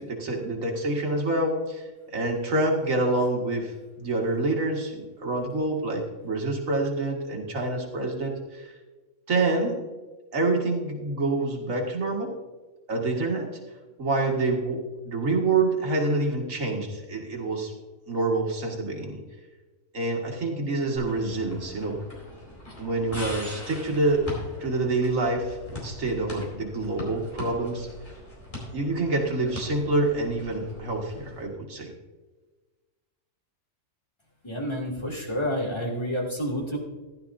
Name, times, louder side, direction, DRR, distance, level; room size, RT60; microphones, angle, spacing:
voice 1, 0.0-8.7 9.3-9.8 10.3-12.3 12.9-13.5 14.0-17.7 18.1-19.2 19.9-22.0 22.8-24.3 24.6-27.9 28.7-31.9, right 2 dB, 75° right, 1 dB, 2.1 m, -27 dB
sound 1, 21.0-31.4, left 1 dB, 35° left, 4.5 m, -41 dB
voice 2, 34.4-36.8, equal, 20° left, -2 dB, 2.3 m, -29 dB
15.0 x 11.5 x 2.6 m, 1.3 s
omnidirectional pair, 1.4 m